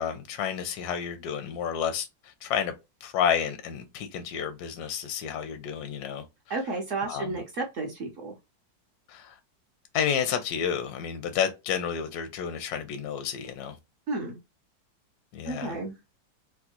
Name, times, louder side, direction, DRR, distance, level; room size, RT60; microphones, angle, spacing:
voice 1, 0.0-2.7 3.0-6.2 7.1-7.4 9.1-9.4 9.9-13.8 15.3-15.8, left 8 dB, 75° left, 0.9 m, -30 dB
voice 2, 6.5-8.3 14.1-14.4 15.5-16.0, right 3 dB, 65° right, 0.7 m, -32 dB
3.5 x 2.1 x 2.8 m
omnidirectional pair, 2.1 m